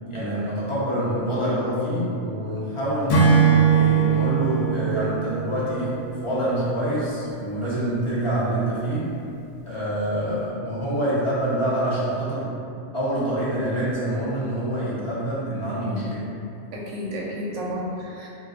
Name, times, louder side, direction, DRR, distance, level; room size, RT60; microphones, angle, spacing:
voice 1, 0.0-3.2 3.6-9.1 9.6-12.5 12.9-16.3, right 1 dB, 40° left, -9 dB, 0.4 m, -26 dB
Acoustic guitar / Strum, 3.1-6.5, right 6 dB, 80° left, 1.0 m, -20 dB
voice 2, 16.7-18.3, equal, 75° right, -4 dB, 0.9 m, -31 dB
2.4 x 2.2 x 3.6 m, 2.6 s
omnidirectional pair, 1.3 m